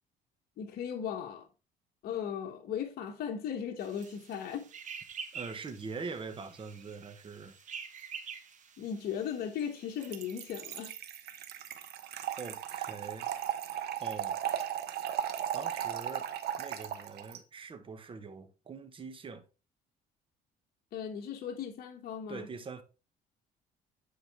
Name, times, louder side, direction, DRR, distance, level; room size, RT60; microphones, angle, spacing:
voice 1, 0.6-1.5 2.0-4.7 8.8-10.9 20.9-22.5, left 8 dB, 65° left, 1.2 m, -37 dB
sound 1, 3.8-10.9, right 6 dB, 45° right, 1.3 m, -48 dB
voice 2, 5.3-7.6 12.4-13.3 14.0-14.4 15.5-16.3 16.6-19.4 22.3-22.8, right 4 dB, 30° right, 1.2 m, -43 dB
Trickle dribble / Fill (with liquid), 10.0-17.4, right 10 dB, 70° right, 1.0 m, -36 dB
9.2 x 4.8 x 3.5 m
cardioid pair, 110°, 17 cm